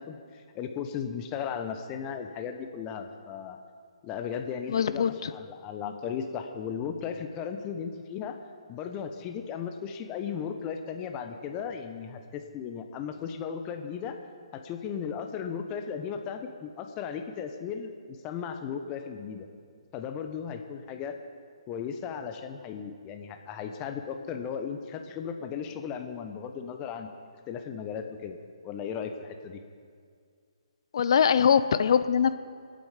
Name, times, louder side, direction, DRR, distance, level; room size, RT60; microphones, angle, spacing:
voice 1, 0.0-3.6 4.0-8.4 8.7-14.2 14.5-19.5 19.9-21.2 21.7-27.1 27.5-28.4 28.6-29.6, left 7 dB, 25° left, 6 dB, 1.1 m, -36 dB
voice 2, 4.7-5.3 30.9-32.4, left 7 dB, 50° left, 13 dB, 0.7 m, -22 dB
24.5 x 9.2 x 5.2 m, 2.1 s
figure-of-eight pair, 135°, 3 cm